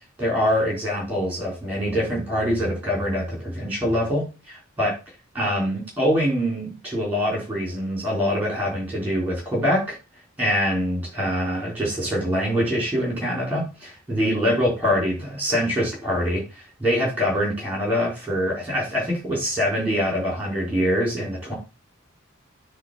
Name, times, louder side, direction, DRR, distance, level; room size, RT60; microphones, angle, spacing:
voice 1, 0.2-4.9 5.3-10.0 10.4-16.4 16.8-21.5, equal, 10° right, -2 dB, 4.1 m, -24 dB
9.7 x 3.3 x 5.6 m, 0.29 s
head